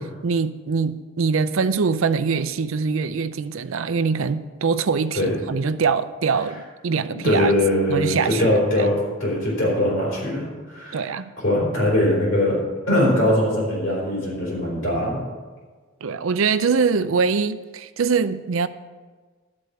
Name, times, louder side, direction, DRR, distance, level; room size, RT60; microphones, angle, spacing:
voice 1, 0.2-7.5 7.9-8.6 10.9-11.3 16.0-18.7, right 5 dB, 70° right, 12 dB, 0.5 m, -23 dB
voice 2, 7.1-11.1 11.4-12.6 12.9-15.2, left 1 dB, 65° left, -5 dB, 4.0 m, -21 dB
12.0 x 4.9 x 7.9 m, 1.4 s
head